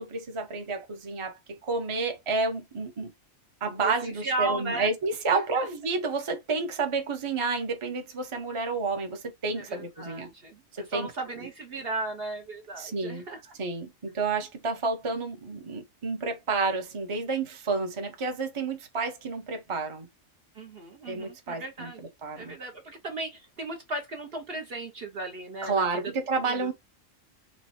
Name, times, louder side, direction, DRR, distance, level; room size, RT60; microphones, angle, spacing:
voice 1, 0.0-3.1 3.6-10.3 10.7-11.1 12.8-13.2 13.6-20.1 21.1-21.9 22.2-22.5 25.6-26.7, right 4 dB, 25° right, 0.9 m, -30 dB
voice 2, 3.8-4.9 5.3-5.7 9.7-10.6 10.9-13.5 20.5-22.0 22.4-26.0 26.5-26.7, right 2 dB, 50° right, 1.0 m, -36 dB
4.4 x 2.2 x 4.2 m
omnidirectional pair, 1.4 m